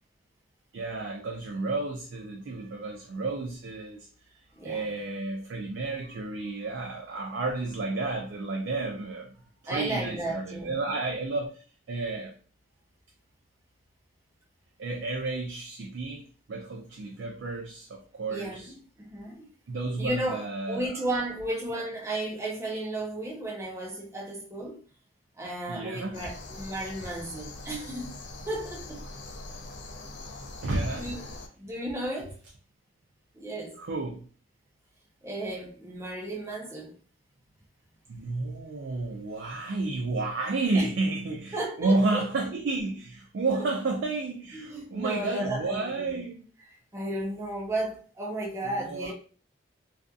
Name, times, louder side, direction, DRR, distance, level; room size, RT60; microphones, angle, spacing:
voice 1, 0.7-4.1 4.6-9.3 9.6-12.3 14.8-16.2 16.5-18.7 19.7-20.9 21.8-21.9 25.7-26.3 30.6-31.1 33.8-34.3 38.1-46.5 48.6-49.1, right 3 dB, 70° right, 0.4 m, -31 dB
voice 2, 4.5-4.9 9.7-10.7 18.3-18.7 19.0-19.5 20.0-24.8 25.4-28.1 28.5-29.0 30.9-31.2 31.6-32.3 33.3-33.8 35.2-37.0 40.7-40.9 41.5-42.3 43.5-43.7 44.5-46.2 46.9-49.1, right 1 dB, 15° right, 0.5 m, -34 dB
sound 1, 26.1-31.5, left 2 dB, 65° left, 0.4 m, -42 dB
2.5 x 2.4 x 2.3 m
head